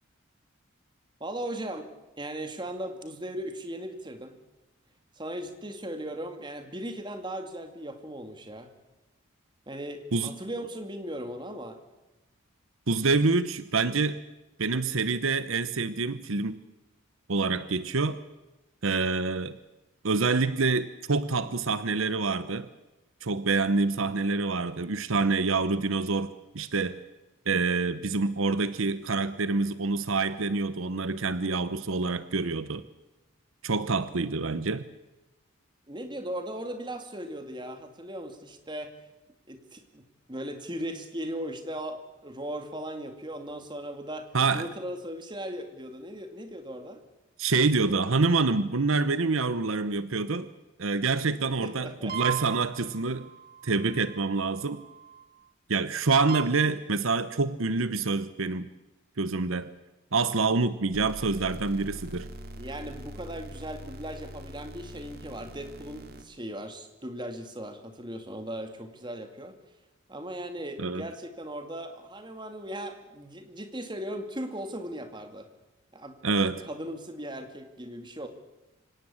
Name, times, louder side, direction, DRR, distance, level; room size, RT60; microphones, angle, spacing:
voice 1, 1.2-1.9 2.2-4.3 5.2-8.7 9.7-11.8 35.9-38.9 39.5-40.0 40.3-47.0 51.6-52.2 62.5-69.6 70.1-75.5 75.9-76.2 76.4-78.3, right 1 dB, 20° right, 7 dB, 2.3 m, -38 dB
voice 2, 12.9-14.2 14.6-16.6 17.3-18.2 18.8-19.6 20.0-22.7 23.2-27.0 27.5-32.8 33.6-34.8 44.3-44.7 47.4-50.5 50.8-53.3 53.6-54.8 55.7-58.7 59.2-59.7 60.1-62.3 70.8-71.0 76.2-76.6, right 3 dB, 70° right, 14 dB, 0.9 m, -26 dB
sound 1, 52.1-55.5 56.3-56.7 60.9-66.2, right 5 dB, 45° right, 2.4 m, -40 dB
25.5 x 17.5 x 8.8 m, 1.0 s
head